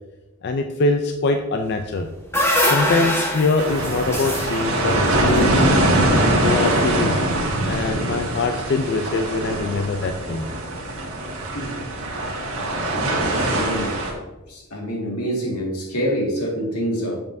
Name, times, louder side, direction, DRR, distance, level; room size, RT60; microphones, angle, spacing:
voice 1, 0.4-2.1 2.6-5.6 6.4-7.2 7.7-10.5, left 3 dB, 50° left, 6 dB, 0.4 m, -23 dB
sound 1, 1.8-6.1, left 1 dB, 10° left, 1.2 m, -24 dB
sound 2, 3.6-14.1, right 1 dB, 65° right, 1.7 m, -22 dB
voice 2, 13.5-14.0 14.5-17.2, equal, 85° left, -1 dB, 2.0 m, -26 dB
7.5 x 7.1 x 2.7 m, 1.0 s
head